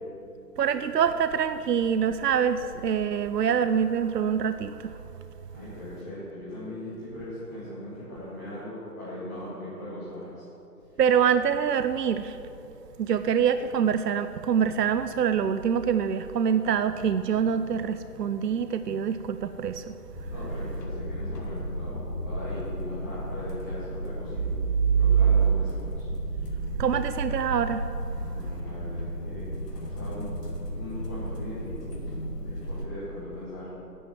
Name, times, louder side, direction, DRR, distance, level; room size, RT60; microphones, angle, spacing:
voice 1, 0.6-4.9 11.0-12.4 13.0-19.9 26.8-27.9, right 7 dB, 75° right, 11 dB, 0.6 m, -25 dB
voice 2, 5.5-10.4 20.3-24.5 24.9-26.1 28.1-30.3 30.6-31.8 32.4-33.7, left 1 dB, 10° left, -14 dB, 1.3 m, -39 dB
sound 1, 20.1-32.9, equal, 75° left, 2.2 m, -34 dB
10.0 x 7.3 x 9.0 m, 2.9 s
hypercardioid pair, 170°, 48 cm